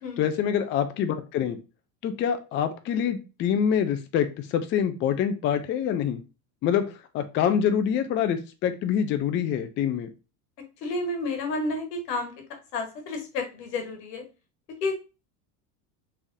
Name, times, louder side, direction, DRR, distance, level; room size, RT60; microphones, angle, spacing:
voice 1, 0.2-1.6 2.0-6.2 6.6-10.1, left 8 dB, 25° left, 8 dB, 0.4 m, -26 dB
voice 2, 10.8-12.3 12.7-14.2 14.8-14.9, left 2 dB, 80° left, 5 dB, 1.3 m, -30 dB
3.5 x 3.4 x 2.6 m, 0.30 s
hypercardioid pair, 100°, 48 cm